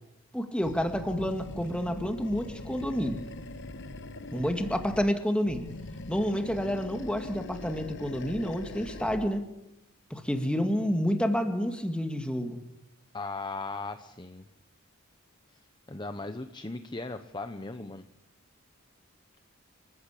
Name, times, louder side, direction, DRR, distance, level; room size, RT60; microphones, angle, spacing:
voice 1, 0.3-3.2 4.3-5.7 6.1-9.5 10.1-12.6, equal, 5° left, 5 dB, 2.0 m, -29 dB
Animal, 0.6-5.1 5.4-9.4, left 2 dB, 55° left, 1.2 m, -42 dB
voice 2, 13.1-14.4 15.9-18.0, left 3 dB, 20° left, 9 dB, 0.8 m, -37 dB
29.0 x 15.0 x 8.5 m, 0.92 s
head